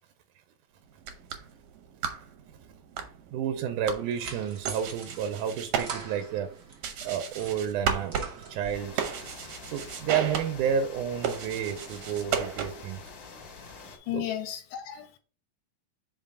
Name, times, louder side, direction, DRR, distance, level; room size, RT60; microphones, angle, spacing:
sound 1, 0.9-13.0, right 7 dB, 70° right, 2.1 m, -35 dB
voice 1, 3.3-6.5 7.0-8.2 8.5-9.0 9.7-13.0 14.1-14.2, right 8 dB, 85° right, 2.1 m, -30 dB
sound 2, 3.8-6.8 7.2-8.9, right 5 dB, 50° right, 1.3 m, -43 dB
sound 3, 8.7-14.0, left 5 dB, 65° left, 1.2 m, -46 dB
voice 2, 13.8-15.2, left 12 dB, 80° left, 2.0 m, -34 dB
5.2 x 3.7 x 5.4 m
omnidirectional pair, 3.6 m